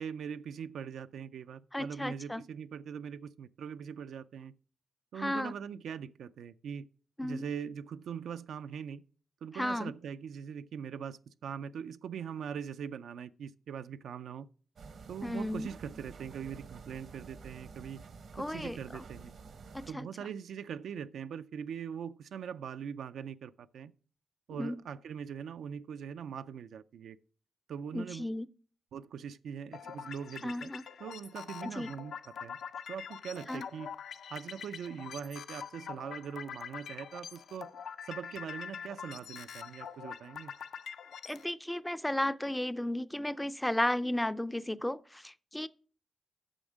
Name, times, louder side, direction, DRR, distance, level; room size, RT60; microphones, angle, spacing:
voice 1, 0.0-4.5 5.1-6.9 7.2-9.0 9.4-14.5 15.1-18.0 18.4-19.3 19.9-23.9 24.5-27.2 27.7-28.3 28.9-30.7 31.0-32.6 32.9-33.9 34.3-37.7 38.0-40.5 44.7-44.8, right 7 dB, 85° right, 0.4 m, -42 dB
voice 2, 1.7-2.4 5.2-5.5 7.2-7.4 9.5-9.9 15.2-15.7 18.4-18.8 19.7-20.1 24.5-24.8 27.9-28.5 30.4-30.8 31.8-31.9 33.5-33.6 41.3-45.7, left 1 dB, 5° left, 0.3 m, -34 dB
sound 1, 14.8-19.9, right 4 dB, 65° right, 0.8 m, -50 dB
sound 2, 29.7-41.5, left 7 dB, 80° left, 0.5 m, -45 dB
8.8 x 6.3 x 4.9 m
wide cardioid pair, 125°, 0 cm